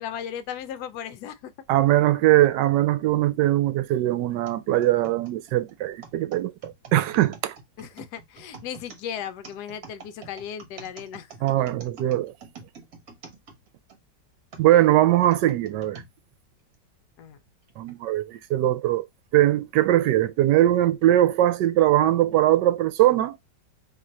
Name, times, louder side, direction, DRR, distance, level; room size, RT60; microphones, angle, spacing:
voice 1, 0.0-1.5 7.8-11.3 17.2-17.4, left 9 dB, 70° left, 1.1 m, -36 dB
voice 2, 1.7-7.5 11.4-12.3 14.6-16.0 17.8-19.1 19.3-23.4, right 14 dB, 80° right, 1.2 m, -21 dB
sound 1, 4.5-14.0 14.5-16.1 16.7-16.8 17.7-17.9, right 5 dB, 60° right, 1.3 m, -46 dB
3.0 x 2.5 x 4.2 m
omnidirectional pair, 1.9 m